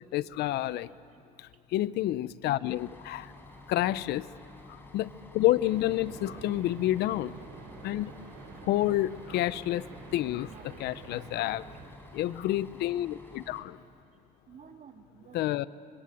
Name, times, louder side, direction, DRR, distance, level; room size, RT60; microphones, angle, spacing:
voice 1, 0.1-0.9 1.4-3.3 3.7-4.3 4.7-7.3 7.8-8.1 8.6-9.9 10.1-10.5 10.8-11.6 12.1-13.8 15.3-15.7, left 15 dB, 80° left, 17 dB, 0.6 m, -29 dB
voice 2, 0.6-1.2 3.4-3.8 7.6-7.7 10.1-10.9 11.4-12.4 13.5-13.6 14.5-15.6, right 7 dB, 45° right, 4 dB, 2.5 m, -55 dB
Bus, 2.7-13.6, left 2 dB, 15° left, 4.6 m, -51 dB
sound 1, 5.6-11.9, right 5 dB, 85° right, 4.7 m, -48 dB
26.0 x 24.5 x 8.6 m, 2.4 s
cardioid pair, 110°, 17 cm